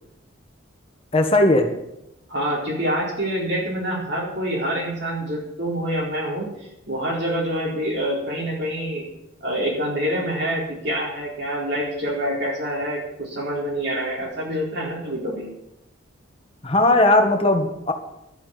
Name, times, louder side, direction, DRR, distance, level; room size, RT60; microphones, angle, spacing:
voice 1, 1.1-1.7 16.6-17.9, left 2 dB, 30° left, 4 dB, 1.6 m, -17 dB
voice 2, 2.3-9.0 9.4-15.5, equal, 55° right, -3 dB, 4.2 m, -26 dB
11.5 x 8.7 x 8.5 m, 0.86 s
head